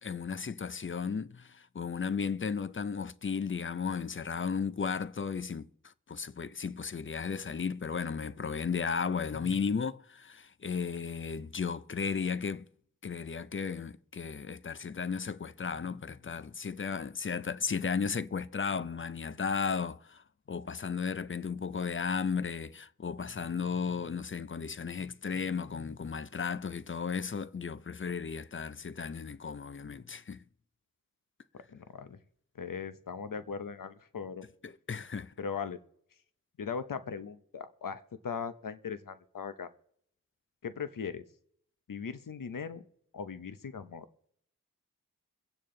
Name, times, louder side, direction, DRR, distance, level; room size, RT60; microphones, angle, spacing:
voice 1, 0.0-5.7 6.1-12.6 13.0-20.2 20.5-30.4 34.6-35.3, left 6 dB, 40° left, 0.5 m, -34 dB
voice 2, 31.7-32.2 32.5-34.5 35.4-35.8 36.6-39.7 40.6-41.2 41.9-42.8 43.1-44.0, left 6 dB, 85° left, 0.8 m, -39 dB
22.5 x 8.6 x 3.8 m
wide cardioid pair, 70°, 32 cm